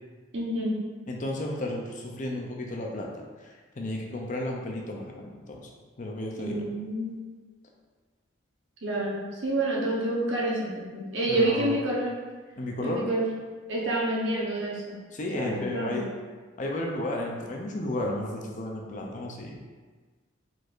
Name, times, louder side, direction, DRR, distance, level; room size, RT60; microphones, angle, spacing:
voice 1, 0.3-0.8 6.4-7.2 8.8-12.1 12.8-13.3 13.7-15.0 15.3-16.0, right 1 dB, 70° right, -4 dB, 1.1 m, -28 dB
voice 2, 1.1-3.1 3.4-5.7 6.0-6.7 11.3-11.8 12.6-13.1 15.1-16.1 16.6-19.6, left 1 dB, 40° left, 0 dB, 0.5 m, -33 dB
4.6 x 4.2 x 2.6 m, 1.4 s
head